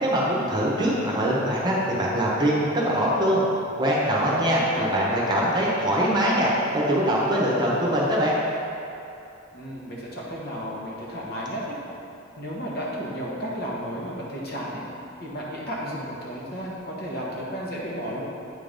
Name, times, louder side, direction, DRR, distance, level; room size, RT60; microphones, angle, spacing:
voice 1, 0.0-3.4 3.8-8.4, equal, 20° right, -5 dB, 1.0 m, -23 dB
voice 2, 4.3-5.6 9.5-11.8 12.4-14.8 15.2-18.2, equal, 50° left, -5 dB, 1.4 m, -33 dB
8.1 x 3.8 x 5.2 m, 2.7 s
head